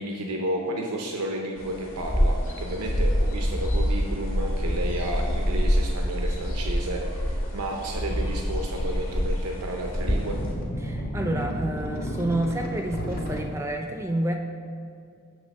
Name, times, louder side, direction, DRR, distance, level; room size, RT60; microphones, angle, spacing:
voice 1, 0.0-10.4, right 1 dB, 90° right, 1 dB, 0.6 m, -32 dB
sound 1, 1.6-10.5, equal, 65° left, 1.6 m, -26 dB
sound 2, 7.9-9.4 10.2-13.4, equal, 40° left, 0.8 m, -32 dB
voice 2, 10.8-14.4, right 1 dB, 10° right, 4 dB, 0.4 m, -29 dB
7.3 x 3.5 x 6.3 m, 2.4 s
head